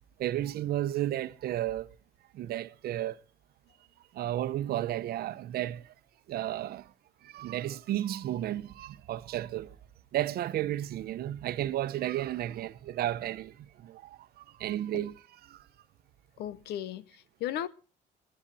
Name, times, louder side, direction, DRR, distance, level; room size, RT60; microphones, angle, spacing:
voice 1, 0.2-1.9 2.3-3.2 4.1-5.9 6.3-6.9 7.2-9.7 10.1-15.7, right 13 dB, 65° right, 0.9 m, -33 dB
voice 2, 16.4-17.7, left 11 dB, 75° left, 0.9 m, -36 dB
21.0 x 9.0 x 4.2 m
cardioid pair, 110°, 17 cm